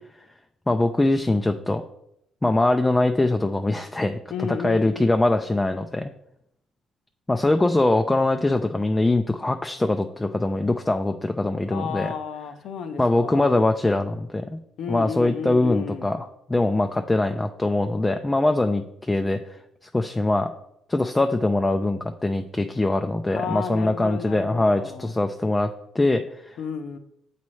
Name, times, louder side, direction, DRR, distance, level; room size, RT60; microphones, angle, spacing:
voice 1, 0.7-1.8 2.4-6.1 7.3-12.1 13.0-14.6 14.9-19.6 19.9-20.5 20.9-26.6, left 2 dB, 15° left, 6 dB, 0.4 m, -22 dB
voice 2, 4.3-5.1 11.7-13.6 14.8-16.1 23.3-25.1 26.6-27.0, left 6 dB, 70° left, 9 dB, 0.6 m, -32 dB
7.4 x 4.2 x 3.1 m, 0.77 s
supercardioid pair, 70°, 0 cm